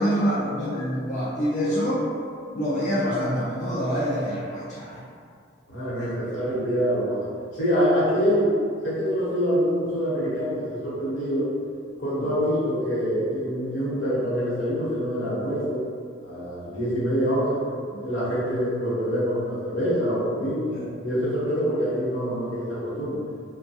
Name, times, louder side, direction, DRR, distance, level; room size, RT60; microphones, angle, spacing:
voice 1, 0.0-2.0 2.5-5.0 6.3-6.5 12.2-12.3 20.7-20.9, equal, 40° left, -10 dB, 0.5 m, -26 dB
voice 2, 5.7-7.2 7.5-8.5 8.8-11.5 12.0-15.8 16.2-17.6 18.0-20.7 21.0-23.2, equal, 80° left, -10 dB, 1.0 m, -25 dB
2.2 x 2.2 x 2.7 m, 2.2 s
head